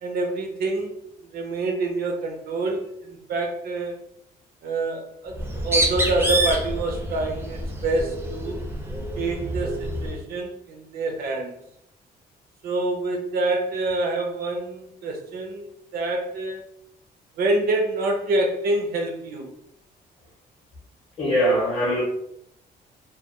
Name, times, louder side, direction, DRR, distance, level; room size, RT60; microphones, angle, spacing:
voice 1, 0.0-0.9 1.2-3.9 4.6-8.6 9.2-11.5 12.6-16.7 17.4-19.5, right 2 dB, 65° right, 3 dB, 0.5 m, -27 dB
Bird, 5.3-10.2, right 1 dB, 15° right, 0.4 m, -27 dB
voice 2, 21.2-22.0, equal, 30° left, -5 dB, 0.6 m, -21 dB
2.2 x 2.1 x 2.8 m, 0.75 s
cardioid pair, 165°, 17 cm